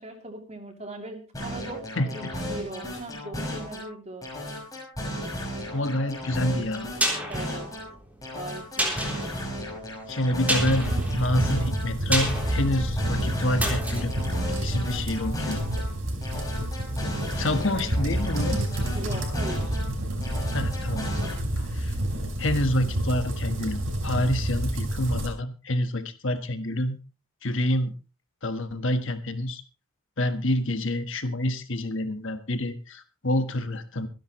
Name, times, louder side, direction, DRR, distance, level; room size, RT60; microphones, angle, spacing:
voice 1, 0.0-4.3 7.3-7.7 8.3-9.2 18.9-19.8, right 2 dB, 30° right, 3 dB, 3.0 m, -39 dB
sound 1, 1.3-3.9 4.2-7.9 8.2-11.9 12.2-15.9 16.2-19.9 20.2-21.3, equal, 15° left, 6.3 m, -35 dB
voice 2, 5.7-6.9 8.9-9.1 10.1-10.9 11.2-14.1 14.6-15.6 17.3-18.6 20.5-22.0 22.4-27.0 27.4-27.9 28.4-29.6 30.2-34.1, left 1 dB, 60° left, 8 dB, 1.5 m, -27 dB
sound 2, 6.7-15.5 15.7-15.8, right 1 dB, 5° right, 3.4 m, -32 dB
sound 3, 10.6-25.3, right 1 dB, 60° right, 4.4 m, -29 dB
25.0 x 10.5 x 3.2 m, 0.32 s
head